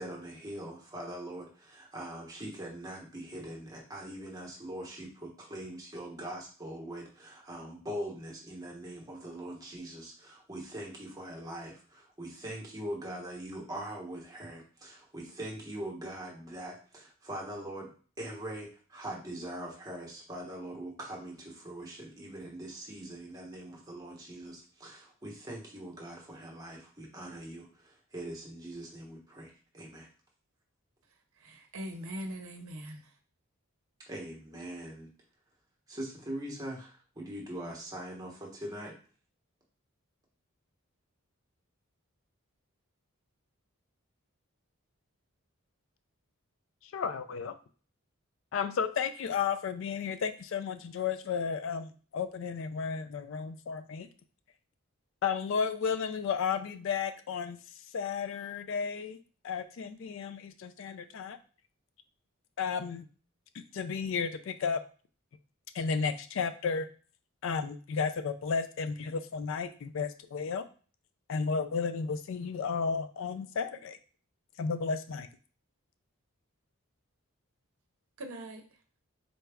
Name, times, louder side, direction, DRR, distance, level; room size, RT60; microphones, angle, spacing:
voice 1, 0.0-17.9 18.2-30.1 34.1-35.1 35.9-38.9, right 1 dB, 15° right, -2 dB, 0.9 m, -42 dB
voice 2, 31.4-33.2 78.2-78.6, equal, 75° right, 4 dB, 0.7 m, -41 dB
voice 3, 46.8-47.6 48.5-54.1 55.2-57.6 57.9-59.2 59.4-61.4 62.6-63.0 63.5-64.8 65.7-66.9 67.4-70.7 71.3-74.0 74.6-75.3, left 6 dB, 60° left, 10 dB, 0.3 m, -33 dB
4.0 x 2.3 x 3.4 m, 0.40 s
head